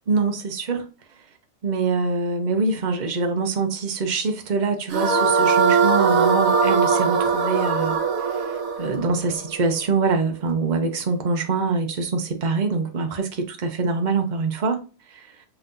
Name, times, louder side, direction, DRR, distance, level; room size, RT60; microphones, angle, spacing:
voice 1, 0.1-0.8 1.6-8.0 8.8-13.4 13.8-14.8 15.1-15.3, right 4 dB, 40° right, 0.8 m, -24 dB
sound 1, 4.9-10.1, right 5 dB, 75° right, 1.2 m, -21 dB
5.5 x 3.4 x 2.6 m
omnidirectional pair, 1.4 m